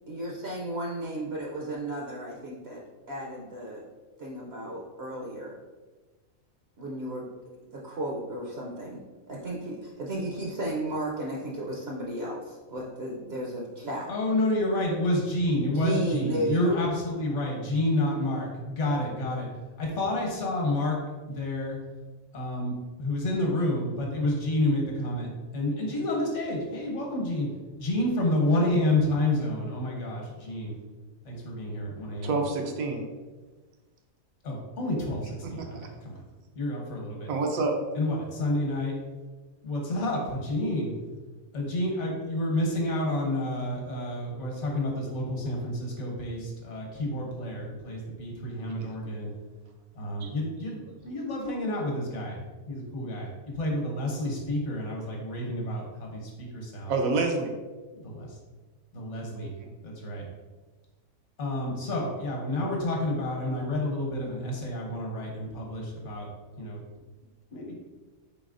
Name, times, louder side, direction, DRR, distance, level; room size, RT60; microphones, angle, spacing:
voice 1, 0.1-2.8 3.1-3.8 4.2-5.5 6.8-7.2 7.7-9.0 9.3-14.1 15.7-16.7, right 1 dB, 60° right, -2 dB, 0.8 m, -34 dB
voice 2, 14.1-19.5 19.8-21.0 21.3-21.8 22.3-25.3 25.5-27.5 27.8-30.8 31.2-32.4 34.4-36.1 36.5-37.3 37.9-38.9 39.6-40.9 41.5-49.3 50.0-52.4 52.7-53.3 53.5-56.9 57.9-58.4 58.9-59.5 59.8-60.3 61.4-66.3 66.6-66.8 67.5-67.8, left 1 dB, 60° left, -1 dB, 1.2 m, -29 dB
voice 3, 32.2-33.0 35.4-35.9 37.3-37.7 50.2-50.3 56.9-57.5 59.6-59.7, right 3 dB, 85° right, 3 dB, 1.1 m, -28 dB
4.1 x 3.9 x 2.5 m, 1.3 s
omnidirectional pair, 1.4 m